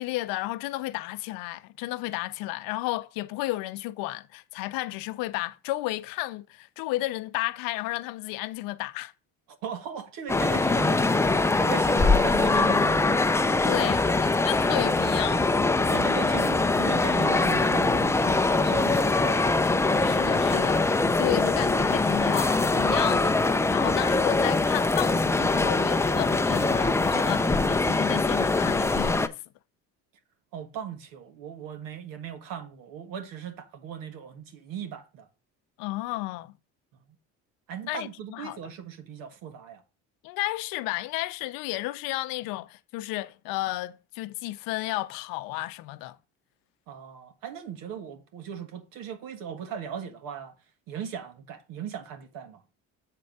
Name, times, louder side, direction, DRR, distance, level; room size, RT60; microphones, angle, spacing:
voice 1, 0.0-9.1 13.7-15.4 20.0-29.4 35.8-36.5 37.9-38.7 40.2-46.2, left 18 dB, 85° left, 0.7 m, -33 dB
voice 2, 9.6-13.3 15.9-19.6 30.5-35.3 37.7-39.8 46.9-50.5 50.9-52.6, right 8 dB, 75° right, 1.7 m, -38 dB
sound 1, 10.3-29.3, left 3 dB, 10° left, 0.5 m, -23 dB
7.6 x 4.5 x 5.3 m
supercardioid pair, 90°, 33 cm